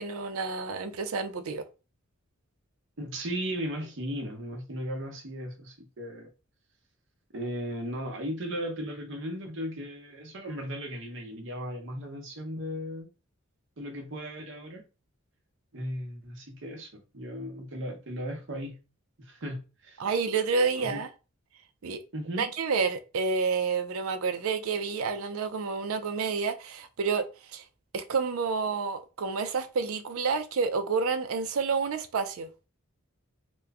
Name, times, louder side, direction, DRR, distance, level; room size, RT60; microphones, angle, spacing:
voice 1, 0.0-1.6 20.0-21.1 21.8-22.0 22.4-27.2 27.5-27.6 27.9-32.5, right 5 dB, 85° right, 0.5 m, -29 dB
voice 2, 3.0-6.3 7.3-13.1 13.8-14.8 15.7-18.8 19.2-20.0 20.8-21.0 22.1-22.5, equal, 60° right, 0.9 m, -36 dB
3.0 x 2.2 x 3.5 m
head